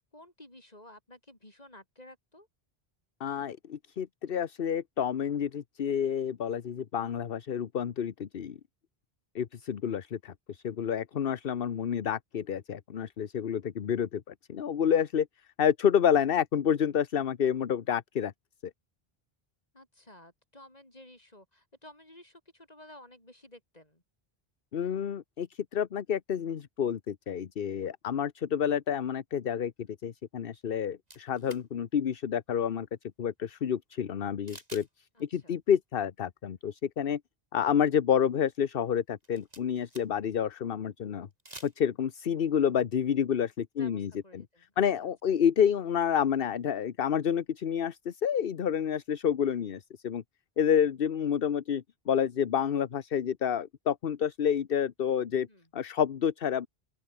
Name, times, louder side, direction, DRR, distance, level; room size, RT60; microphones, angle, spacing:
voice 1, 0.0-2.5 19.7-24.0 35.1-35.6 40.3-40.5 43.8-45.1 50.8-50.9 55.5-55.7, left 1 dB, 40° left, 5.8 m, -54 dB
voice 2, 3.2-8.6 9.3-14.2 14.5-15.3 15.6-18.3 24.7-29.7 30.0-32.9 33.2-34.9 35.2-37.2 37.5-41.3 41.6-44.4 44.8-50.2 50.6-55.5 55.7-56.7, left 8 dB, 65° left, 1.1 m, -29 dB
sound 1, 31.1-31.6 34.5-34.9 35.2-35.3 39.1-40.3 41.3-41.8, right 1 dB, 40° right, 5.7 m, -49 dB
open air
omnidirectional pair, 1.0 m